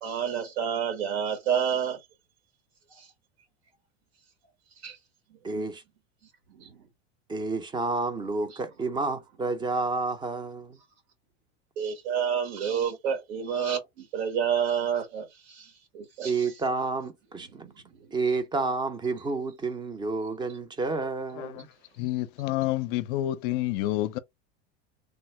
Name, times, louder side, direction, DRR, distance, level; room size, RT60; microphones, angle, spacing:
voice 1, 0.0-2.0 2.9-3.1 4.8-5.0 6.6-6.8 11.8-16.5 17.5-17.6, right 8 dB, 70° right, 1.3 m, -29 dB
voice 2, 5.4-5.8 7.3-10.8 16.2-17.7 18.1-21.7, right 3 dB, 15° right, 0.5 m, -30 dB
voice 3, 21.3-21.7 21.9-24.2, left 15 dB, 55° left, 0.5 m, -29 dB
3.3 x 2.0 x 3.1 m
supercardioid pair, 125°, 32 cm